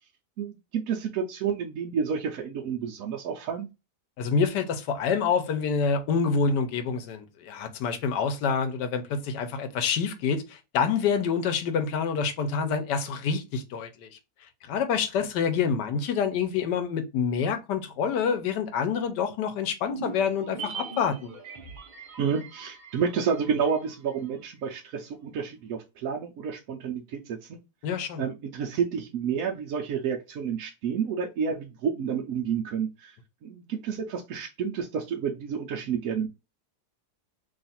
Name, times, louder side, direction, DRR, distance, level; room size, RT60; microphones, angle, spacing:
voice 1, 0.4-3.7 22.2-27.6 28.2-33.2 33.4-36.3, right 7 dB, 65° right, 0.9 m, -30 dB
voice 2, 4.2-14.1 14.7-21.3 27.8-28.2, left 6 dB, 85° left, 1.3 m, -27 dB
sound 1, 19.8-24.3 24.6-24.7, right 5 dB, 45° right, 0.7 m, -41 dB
3.1 x 2.4 x 4.1 m
omnidirectional pair, 1.8 m